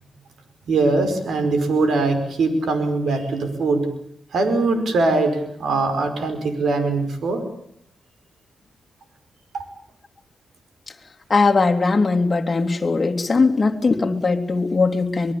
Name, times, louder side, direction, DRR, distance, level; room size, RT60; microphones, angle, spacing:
voice 1, 0.7-3.9 4.3-7.4 9.5-9.7, right 3 dB, 75° right, 5.2 m, -21 dB
voice 2, 11.3-15.3, left 3 dB, 30° left, 3.1 m, -19 dB
24.5 x 22.5 x 8.6 m
cardioid pair, 90°, 0 cm